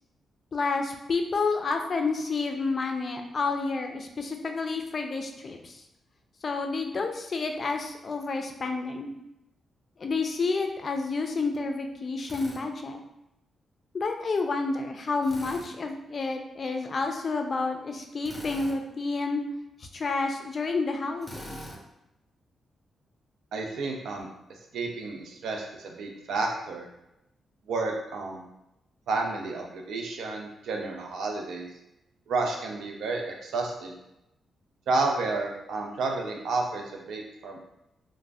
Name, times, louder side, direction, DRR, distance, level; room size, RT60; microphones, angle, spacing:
voice 1, 0.5-5.8 6.4-9.1 10.0-13.0 13.9-19.4 19.9-21.6, left 3 dB, 45° left, 4 dB, 0.4 m, -29 dB
Drill, 12.2-12.6 15.2-15.7 18.2-18.8 21.2-21.8, equal, 5° left, 0.8 m, -42 dB
voice 2, 23.5-24.3 24.7-26.9 27.7-28.4 29.1-31.7 32.3-33.9 34.9-37.6, right 3 dB, 85° right, 1 dB, 0.5 m, -31 dB
2.4 x 2.1 x 3.3 m, 0.87 s
cardioid pair, 85°, 0 cm